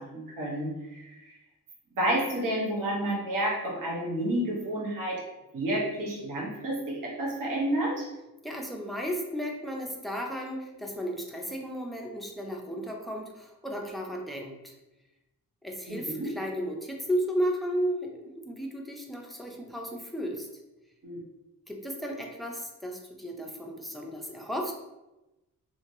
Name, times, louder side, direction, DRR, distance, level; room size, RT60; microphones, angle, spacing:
voice 1, 0.0-1.3 2.0-5.2 5.5-8.1 15.9-16.3 21.0-21.2, right 1 dB, 65° right, -4 dB, 0.9 m, -30 dB
voice 2, 8.4-14.7 15.6-20.5 21.7-24.7, equal, ahead, 0 dB, 0.3 m, -34 dB
3.1 x 2.5 x 2.5 m, 0.98 s
wide cardioid pair, 130°, 35 cm